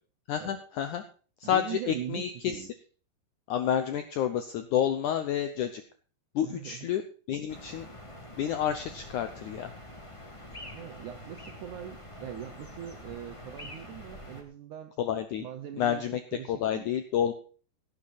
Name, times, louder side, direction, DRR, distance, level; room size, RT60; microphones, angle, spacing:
voice 1, 0.3-1.0 1.4-2.6 3.5-5.8 6.3-7.0 7.3-7.9 8.4-9.7 15.0-15.5 15.8-16.2 16.5-17.3, left 9 dB, 80° left, 9 dB, 1.8 m, -29 dB
voice 2, 1.4-2.7 6.4-6.9 10.7-14.9 15.4-16.0 16.3-16.9, right 11 dB, 75° right, 7 dB, 1.8 m, -41 dB
sound 1, 7.5-14.4, left 1 dB, 15° left, 1.2 m, -46 dB
16.5 x 8.7 x 4.1 m, 0.40 s
omnidirectional pair, 4.7 m